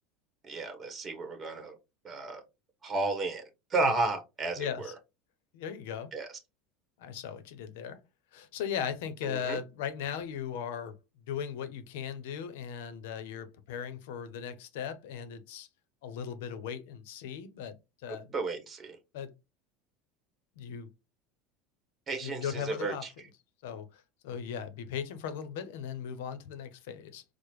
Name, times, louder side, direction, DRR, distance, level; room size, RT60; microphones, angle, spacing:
voice 1, 0.4-1.7 2.0-2.4 2.8-3.4 3.7-4.9 6.1-6.3 9.2-9.6 18.3-19.0 22.1-23.1, right 3 dB, 25° right, 1.0 m, -33 dB
voice 2, 4.6-4.9 5.5-6.1 7.0-8.0 8.3-11.0 11.3-15.7 16.0-17.8 18.0-18.3 19.1-19.3 20.6-20.9 22.2-23.0 23.6-27.2, left 8 dB, 85° left, 0.6 m, -38 dB
4.8 x 2.0 x 3.1 m
supercardioid pair, 120°, 0 cm